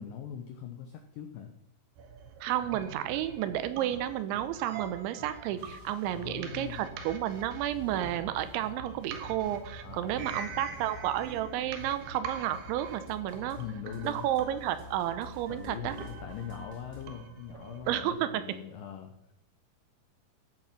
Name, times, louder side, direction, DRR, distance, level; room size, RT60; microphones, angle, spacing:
voice 1, 0.0-1.5 6.1-6.9 9.8-10.7 13.6-14.3 15.5-19.1, left 9 dB, 85° left, 5 dB, 1.9 m, -42 dB
sound 1, 2.0-18.1, right 6 dB, 70° right, 3.0 m, -45 dB
sound 2, 2.4-17.0, left 1 dB, 30° right, 3.7 m, -49 dB
voice 2, 2.4-13.6 14.0-15.9 17.9-18.3, right 12 dB, 90° right, 11 dB, 3.2 m, -32 dB
14.0 x 7.6 x 5.9 m, 0.85 s
omnidirectional pair, 5.2 m